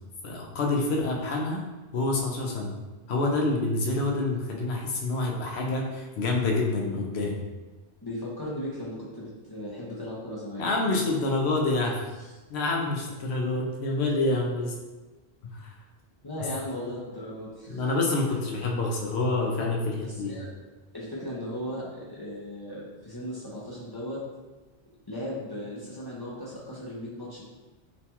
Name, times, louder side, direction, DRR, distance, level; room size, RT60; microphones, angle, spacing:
voice 1, 0.2-1.6 1.9-2.7 3.1-7.4 10.6-12.0 12.5-14.7 17.7-20.3, left 2 dB, 70° left, 0 dB, 0.8 m, -27 dB
voice 2, 8.0-10.7 12.2-12.3 14.3-14.4 16.2-17.8 20.0-20.5 20.9-24.2 25.1-27.4, left 1 dB, 40° left, -8 dB, 0.3 m, -37 dB
3.0 x 2.2 x 2.8 m, 1.2 s
omnidirectional pair, 1.2 m